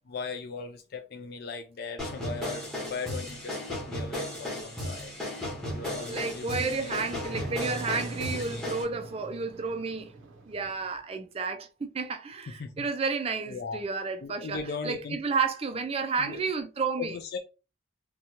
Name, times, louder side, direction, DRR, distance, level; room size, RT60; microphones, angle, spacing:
voice 1, 0.1-7.5 8.2-8.6 12.5-12.9 13.5-13.8 14.2-15.2 16.2-16.4 17.0-17.4, left 4 dB, 50° left, 0.3 m, -39 dB
sound 1, 2.0-8.8, left 1 dB, 5° left, 0.8 m, -35 dB
sound 2, 5.0-11.0, right 2 dB, 75° right, 0.6 m, -44 dB
voice 2, 6.1-10.1 10.5-17.1, right 4 dB, 30° right, 0.3 m, -31 dB
2.7 x 2.2 x 2.8 m
head